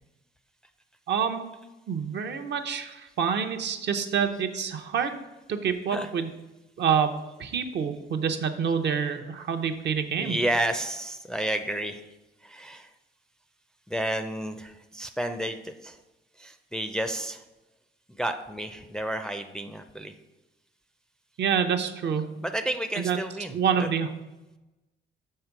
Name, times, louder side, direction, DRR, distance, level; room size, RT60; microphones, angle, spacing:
voice 1, 1.1-1.5 1.9-5.2 5.5-6.3 6.8-10.4 21.4-22.2 22.9-23.2 23.5-24.1, right 7 dB, 60° right, 6 dB, 0.7 m, -27 dB
voice 2, 10.2-12.0 12.4-12.9 13.9-16.0 16.4-17.4 18.1-20.1 22.4-23.9, right 1 dB, 5° left, 6 dB, 0.4 m, -31 dB
6.6 x 3.6 x 5.9 m, 1.0 s
cardioid pair, 90°, 20 cm